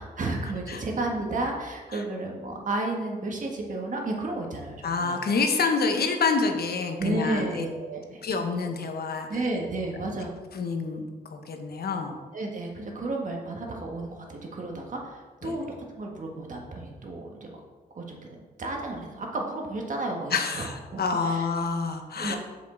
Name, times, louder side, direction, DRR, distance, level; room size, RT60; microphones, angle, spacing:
voice 1, 0.0-5.2 7.0-8.2 9.3-10.3 12.3-15.6 15.9-17.6 17.9-21.5 22.2-22.4, right 2 dB, 50° right, 0 dB, 1.5 m, -32 dB
voice 2, 4.8-7.6 8.2-9.3 10.5-12.2 15.4-15.6 20.3-22.4, left 4 dB, 70° left, 5 dB, 1.0 m, -27 dB
7.4 x 7.3 x 3.9 m, 1.4 s
wide cardioid pair, 140°, 17 cm